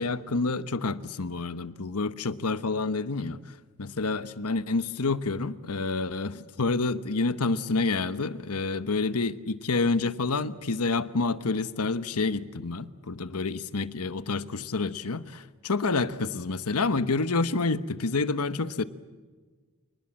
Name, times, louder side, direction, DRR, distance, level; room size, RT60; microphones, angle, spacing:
voice 1, 0.0-18.8, left 3 dB, 85° left, 1.1 m, -28 dB
28.5 x 20.0 x 7.6 m
head